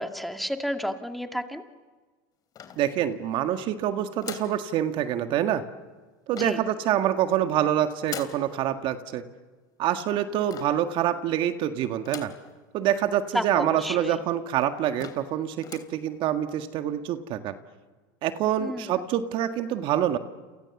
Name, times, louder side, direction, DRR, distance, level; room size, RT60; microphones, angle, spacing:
voice 1, 0.0-1.6 6.4-6.6 13.3-14.2 18.6-19.0, equal, ahead, 6 dB, 2.2 m, -31 dB
sound 1, 2.5-3.3 4.2-4.6 6.3-6.7 8.1-8.5 10.5-10.9 12.0-12.5 12.9-13.0 13.3-13.4 14.1-14.2 14.6-14.7 15.0-15.3 15.6-16.0, left 8 dB, 35° left, 3.4 m, -41 dB
voice 2, 2.8-5.6 6.3-9.2 9.8-12.3 12.7-17.5 18.2-20.2, right 11 dB, 50° right, 8 dB, 1.8 m, -26 dB
29.5 x 28.0 x 7.2 m, 1.3 s
supercardioid pair, 110°, 11 cm